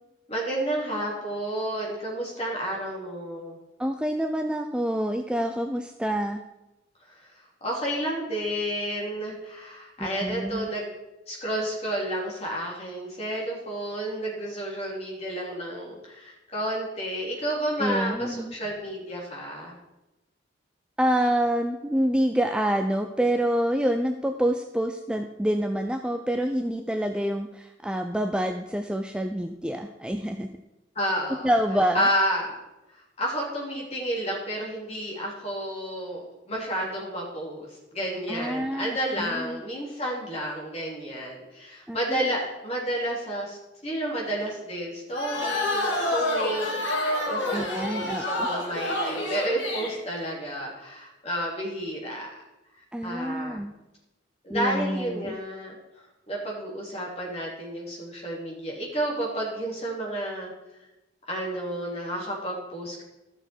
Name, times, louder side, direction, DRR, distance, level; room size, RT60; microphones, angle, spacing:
voice 1, 0.3-3.6 7.1-7.2 7.6-10.9 11.3-19.7 30.9-31.5 31.9-32.6 32.9-43.6 43.8-52.4 53.0-53.6 54.4-55.8 56.3-60.5 61.3-63.0, right 1 dB, 35° left, -4 dB, 3.1 m, -31 dB
voice 2, 3.8-6.4 10.0-10.7 17.8-18.5 21.0-30.5 31.4-32.1 38.3-39.6 41.9-42.3 47.5-48.5 52.9-53.7 54.5-55.4, equal, 5° right, 5 dB, 0.4 m, -27 dB
sound 1, 45.1-50.0, left 1 dB, 85° left, 2.1 m, -28 dB
13.0 x 6.7 x 4.5 m, 0.98 s
head